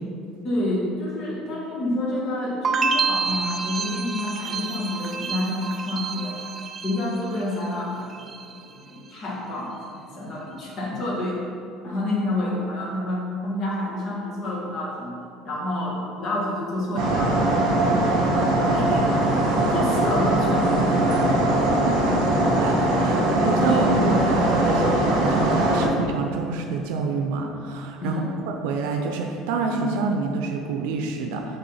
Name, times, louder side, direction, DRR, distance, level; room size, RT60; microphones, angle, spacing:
voice 1, 0.4-6.4 6.8-8.1 8.9-11.4 11.8-15.2 15.4-18.3 18.6-19.4 19.7-21.2 23.7-23.8 28.0-28.4, left 1 dB, 35° left, -3 dB, 1.5 m, -29 dB
sound 1, 2.6-7.7 8.0-8.6, right 4 dB, 25° right, 0.3 m, -28 dB
sound 2, 17.0-25.9, right 1 dB, 60° right, 1.6 m, -21 dB
voice 2, 22.6-31.6, right 4 dB, 85° right, 3 dB, 0.6 m, -27 dB
6.7 x 3.8 x 5.6 m, 2.5 s
cardioid pair, 165°, 0 cm